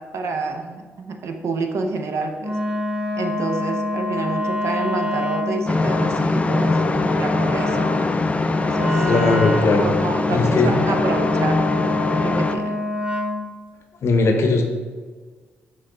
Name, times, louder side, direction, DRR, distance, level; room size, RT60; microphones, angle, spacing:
voice 1, 0.1-2.5 3.2-6.8 7.1-7.9 8.6-9.1 9.8-11.6 12.2-12.7, right 3 dB, 65° right, 4 dB, 0.6 m, -28 dB
Wind instrument woodwind instrument, 2.4-13.4, left 2 dB, 20° right, 1.3 m, -27 dB
sound 1, 5.7-12.6, left 3 dB, 25° left, 0.4 m, -22 dB
voice 2, 9.1-9.9 10.3-10.7 14.0-14.6, left 3 dB, 60° left, 3 dB, 0.8 m, -18 dB
6.1 x 2.3 x 3.7 m, 1.5 s
supercardioid pair, 55°, 5 cm